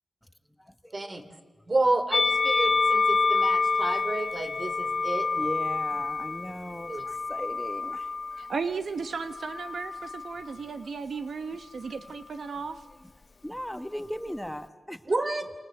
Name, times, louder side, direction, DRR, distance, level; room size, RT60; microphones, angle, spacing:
voice 1, 0.7-1.1 3.4-3.5 5.4-8.5 13.4-15.0, equal, 5° left, 1.2 m, -38 dB
voice 2, 1.7-5.3 6.9-7.0 15.1-15.5, right 2 dB, 45° right, 3.6 m, -30 dB
Musical instrument, 2.1-8.5 9.4-10.4, left 4 dB, 60° left, 1.2 m, -27 dB
voice 3, 8.4-12.8, right 5 dB, 75° right, 1.2 m, -35 dB
28.5 x 26.5 x 7.9 m
cardioid pair, 70°, 0 cm